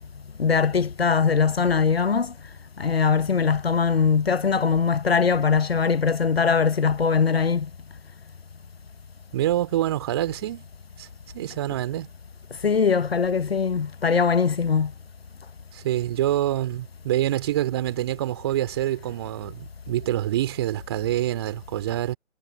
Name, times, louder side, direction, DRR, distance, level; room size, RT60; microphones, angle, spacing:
voice 1, 0.4-2.3 2.8-7.7 12.6-14.9, left 5 dB, 50° left, 1.2 m, -21 dB
voice 2, 9.3-10.7 11.0-11.1 11.3-12.1 15.7-22.2, right 13 dB, 20° right, 2.7 m, -26 dB
figure-of-eight pair, 150°, 38 cm